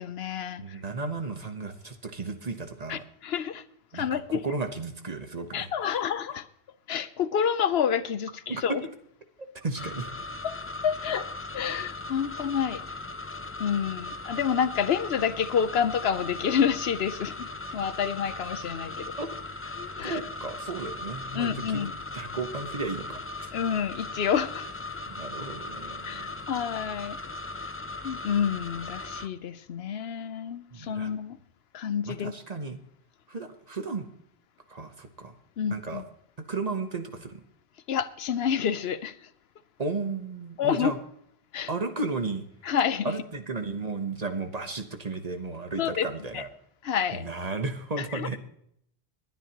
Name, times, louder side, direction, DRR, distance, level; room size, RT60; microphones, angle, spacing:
voice 1, 0.0-0.8 2.9-3.6 3.9-4.4 5.5-6.5 6.9-8.8 10.4-10.5 10.8-11.3 11.5-12.8 13.6-19.1 19.8-20.2 21.3-21.9 23.5-24.7 26.0-27.2 28.0-31.4 31.7-32.3 35.6-36.0 37.9-39.2 40.6-40.9 41.5-41.7 42.6-43.1 45.8-46.1 46.3-46.4 46.8-47.2 48.0-48.4, left 8 dB, 75° left, 14 dB, 0.9 m, -28 dB
voice 2, 0.6-3.0 3.9-5.7 8.5-8.6 9.4-10.1 19.2-19.3 20.0-23.5 25.1-26.4 30.7-31.1 32.0-32.8 33.3-34.1 34.7-35.3 35.7-36.0 36.4-37.4 39.8-41.0 41.7-42.4 43.0-46.5 47.1-48.4, right 3 dB, 40° right, 8 dB, 1.1 m, -34 dB
sound 1, 9.8-29.3, left 2 dB, 20° left, 0.4 m, -38 dB
21.0 x 9.3 x 2.9 m, 0.70 s
omnidirectional pair, 1.1 m